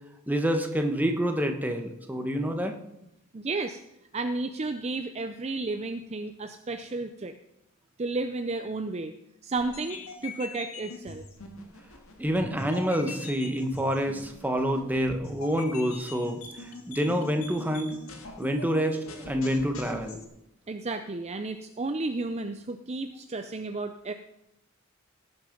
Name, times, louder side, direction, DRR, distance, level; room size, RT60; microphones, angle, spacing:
voice 1, 0.3-2.7 12.2-17.9 18.4-20.2, equal, 10° right, 4 dB, 1.3 m, -27 dB
voice 2, 3.3-3.8 4.1-7.3 8.0-9.2 9.4-11.2 20.7-24.1, right 3 dB, 30° right, 8 dB, 0.6 m, -32 dB
sound 1, 9.6-20.2, left 3 dB, 85° left, 2.0 m, -43 dB
17.5 x 8.0 x 5.3 m, 0.83 s
head